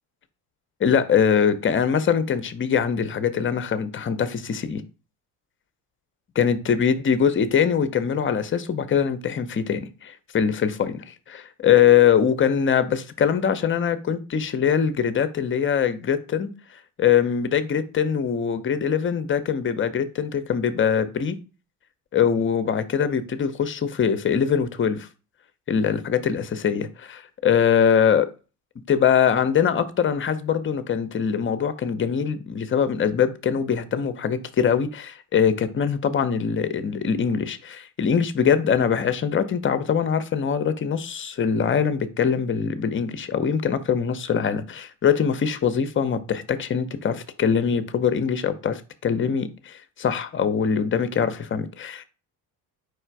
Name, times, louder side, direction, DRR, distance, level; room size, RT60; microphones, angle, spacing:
voice 1, 0.8-4.8 6.4-16.5 17.0-21.4 22.1-25.1 25.7-28.3 28.9-52.0, left 7 dB, 25° left, 0.6 m, -22 dB
4.8 x 2.4 x 4.6 m
supercardioid pair, 75°, 46 cm